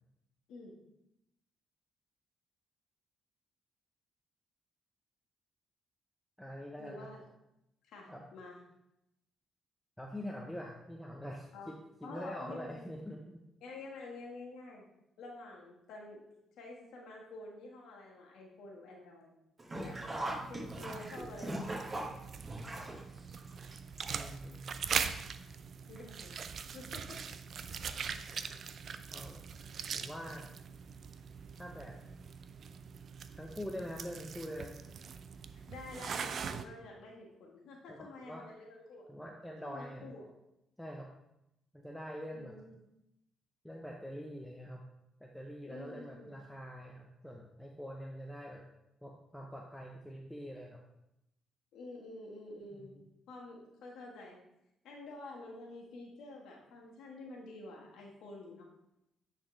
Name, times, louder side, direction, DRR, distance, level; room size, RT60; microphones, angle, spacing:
voice 1, 0.5-0.8 6.8-7.2 7.8-8.6 11.5-11.7 12.0-12.9 13.6-14.9 15.2-16.3 16.6-19.3 19.8-20.0 20.5-22.0 25.9-26.4 26.7-27.2 27.5-27.7 35.7-39.1 39.6-40.2 42.3-42.8 45.7-46.4 51.7-52.9 53.3-54.4 54.8-58.7, left 2 dB, 80° left, -1 dB, 1.6 m, -49 dB
voice 2, 6.4-7.1 8.1-8.2 10.0-13.4 24.1-24.8 29.1-29.4 29.9-30.4 31.6-31.9 33.4-34.7 37.9-38.4 39.1-40.1 40.8-41.1 41.7-42.5 43.6-44.8 45.2-48.6 49.0-50.8 53.0-53.1, equal, 5° left, 0 dB, 0.7 m, -44 dB
Sink (filling or washing), 19.6-24.5 24.8-24.9 26.0-26.1 26.4-26.5, right 1 dB, 30° right, 2.1 m, -40 dB
sound 1, 19.7-36.6, right 6 dB, 55° right, 0.4 m, -42 dB
9.2 x 4.2 x 3.2 m, 0.85 s
cardioid pair, 90°, 0 cm